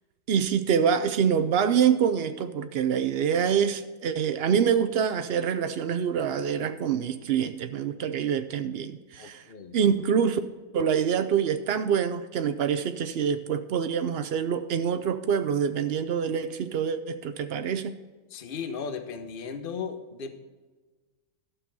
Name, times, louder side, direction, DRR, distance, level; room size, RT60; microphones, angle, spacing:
voice 1, 0.3-9.4 9.7-10.4 10.7-17.9, right 7 dB, 90° right, 10 dB, 0.5 m, -25 dB
voice 2, 9.2-9.8 18.3-20.3, left 6 dB, 40° left, 9 dB, 0.9 m, -36 dB
12.0 x 6.8 x 5.5 m, 1.3 s
omnidirectional pair, 1.8 m